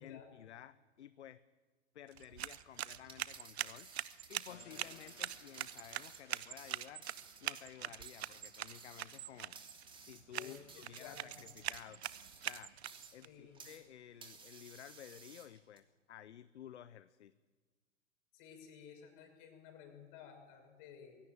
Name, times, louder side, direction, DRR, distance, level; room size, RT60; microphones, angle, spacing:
voice 1, 0.0-1.4 1.9-3.9 4.3-7.1 7.4-9.6 10.0-12.0 12.4-12.7 13.1-17.3, left 10 dB, 70° left, 17 dB, 0.8 m, -54 dB
sound 1, 2.1-13.3, right 12 dB, 60° right, 0.9 m, -44 dB
sound 2, 3.0-13.9 14.2-15.8, right 5 dB, 15° right, 2.8 m, -57 dB
sound 3, 4.5-15.7, left 4 dB, 85° left, 2.4 m, -67 dB
voice 2, 10.3-11.4 13.2-13.6 18.3-21.2, left 7 dB, 45° left, 5 dB, 5.8 m, -55 dB
21.5 x 17.0 x 9.0 m, 1.4 s
figure-of-eight pair, 95°, 36 cm